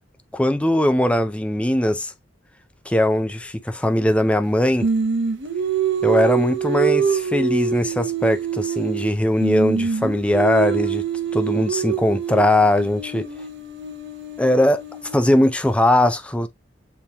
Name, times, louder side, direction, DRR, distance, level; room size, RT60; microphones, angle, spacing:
voice 1, 0.3-2.1 2.9-4.9 6.0-11.0 11.3-13.3 14.4-16.5, left 1 dB, 5° left, 0.4 m, -20 dB
Singing, 4.8-9.1 9.4-15.4, right 6 dB, 65° right, 0.9 m, -25 dB
5.5 x 3.0 x 2.9 m
head